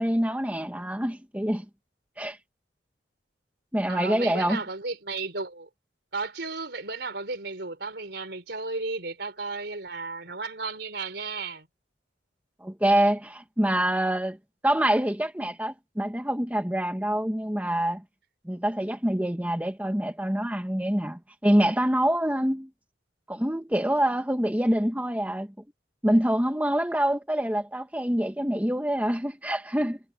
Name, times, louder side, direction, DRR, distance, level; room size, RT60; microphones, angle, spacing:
voice 1, 0.0-1.6 2.2-2.4 3.7-4.6 12.6-14.4 14.6-18.0 18.4-22.7 23.3-25.5 26.0-30.0, right 1 dB, 10° right, 1.6 m, -25 dB
voice 2, 3.9-5.7 6.1-11.7, right 3 dB, 65° right, 4.5 m, -34 dB
head